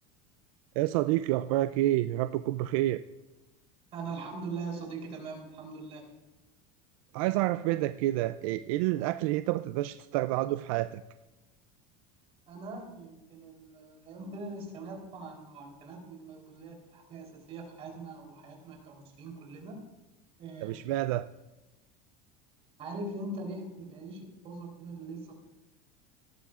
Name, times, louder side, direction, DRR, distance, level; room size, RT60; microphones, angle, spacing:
voice 1, 0.8-3.0 7.1-11.0 20.6-21.3, right 15 dB, 70° right, 12 dB, 0.4 m, -28 dB
voice 2, 3.9-6.1 12.5-19.8 20.4-20.8 22.8-25.4, right 3 dB, 35° right, 0 dB, 3.7 m, -41 dB
18.5 x 13.5 x 2.5 m, 1.0 s
cardioid pair, 160°, 18 cm